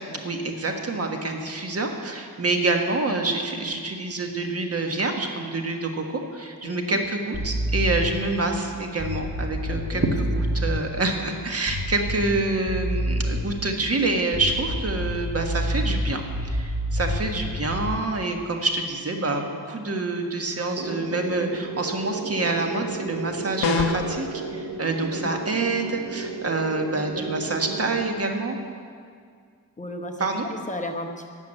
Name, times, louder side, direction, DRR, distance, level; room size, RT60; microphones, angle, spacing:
voice 1, 0.2-28.6 30.2-30.5, right 2 dB, 40° right, 3 dB, 1.5 m, -27 dB
voice 2, 6.6-7.0 9.7-10.0 25.2-25.3 27.7-27.8 29.8-31.3, left 1 dB, 20° left, 2 dB, 0.9 m, -35 dB
sound 1, 7.3-8.3 9.0-10.9 11.7-12.4 12.7-13.6 14.3-18.0, equal, 20° right, 4.1 m, -28 dB
sound 2, 20.7-28.0, right 4 dB, 60° right, 1.1 m, -33 dB
sound 3, 23.6-24.2, left 4 dB, 60° left, 1.3 m, -23 dB
12.0 x 7.3 x 8.9 m, 2.1 s
wide cardioid pair, 95°, 37 cm